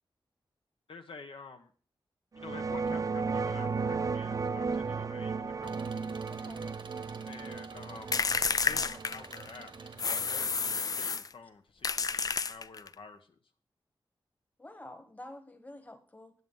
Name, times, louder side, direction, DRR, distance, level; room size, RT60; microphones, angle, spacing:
voice 1, 0.9-1.7 2.3-5.9 7.3-8.2 8.6-13.3, left 4 dB, 70° left, 5 dB, 1.0 m, -49 dB
sound 1, 2.4-11.0, right 4 dB, 40° right, 0.4 m, -35 dB
Engine, 5.6-10.6, right 4 dB, 65° right, 1.2 m, -51 dB
voice 2, 6.3-6.7 14.6-16.3, left 1 dB, 15° left, 7 dB, 1.3 m, -48 dB
sound 2, 8.1-9.5 10.0-11.3 11.8-12.9, left 5 dB, 45° left, 0.4 m, -30 dB
9.6 x 7.7 x 5.4 m, 0.42 s
wide cardioid pair, 120°, 9 cm